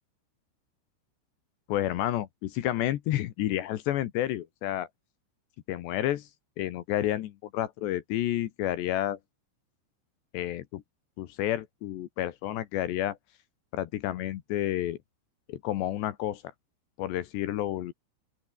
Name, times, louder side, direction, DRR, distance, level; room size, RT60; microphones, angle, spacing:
voice 1, 1.7-4.9 5.7-6.3 6.6-9.2 10.3-10.8 11.2-13.2 13.7-15.0 15.5-16.4 17.0-17.9, left 13 dB, 70° left, 3.1 m, -30 dB
open air
omnidirectional pair, 5.7 m